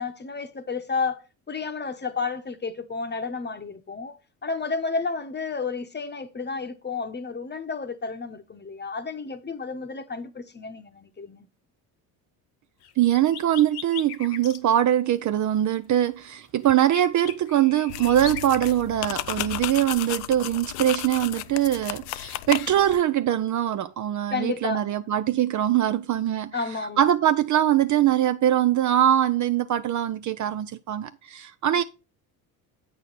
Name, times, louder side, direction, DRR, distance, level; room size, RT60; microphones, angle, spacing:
voice 1, 0.0-11.5 24.3-24.8 26.5-27.1, left 4 dB, 20° left, 1.0 m, -31 dB
sound 1, 12.8-14.6 16.6-18.4, left 9 dB, 55° left, 1.0 m, -39 dB
voice 2, 13.0-26.6 27.0-31.8, right 11 dB, 40° right, 0.5 m, -22 dB
sound 2, 17.9-23.0, left 16 dB, 75° left, 0.6 m, -33 dB
8.0 x 6.2 x 4.0 m
hypercardioid pair, 65°, 47 cm